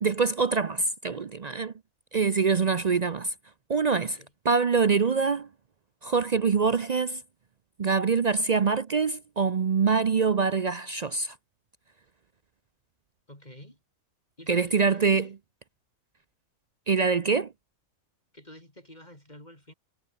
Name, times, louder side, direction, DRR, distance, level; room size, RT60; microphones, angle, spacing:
voice 1, 0.0-1.7 2.1-3.3 3.7-4.1 4.5-5.5 6.0-7.2 7.8-11.3 14.5-15.3 16.9-17.5, right 5 dB, 60° right, 0.4 m, -24 dB
voice 2, 13.3-13.8 14.4-15.3 18.3-19.7, left 1 dB, 25° left, 7.2 m, -49 dB
omnidirectional pair, 1.6 m